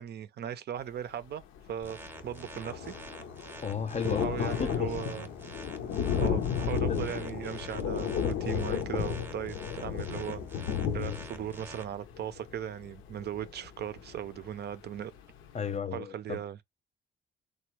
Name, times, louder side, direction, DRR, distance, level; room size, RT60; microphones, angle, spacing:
voice 1, 0.0-1.4 1.7-2.9 4.0-5.3 6.2-15.1 15.9-16.6, right 10 dB, 55° right, 0.5 m, -38 dB
Thunder, 1.6-1.7 1.9-14.5 15.0-15.1 15.4-15.5, left 7 dB, 80° left, 0.6 m, -33 dB
sound 1, 1.8-11.8, right 2 dB, 10° right, 0.7 m, -48 dB
voice 2, 3.6-5.0 6.9-7.0 10.9-11.2 15.5-16.4, left 7 dB, 35° left, 0.6 m, -34 dB
3.3 x 2.2 x 3.0 m
cardioid pair, 90°, 20 cm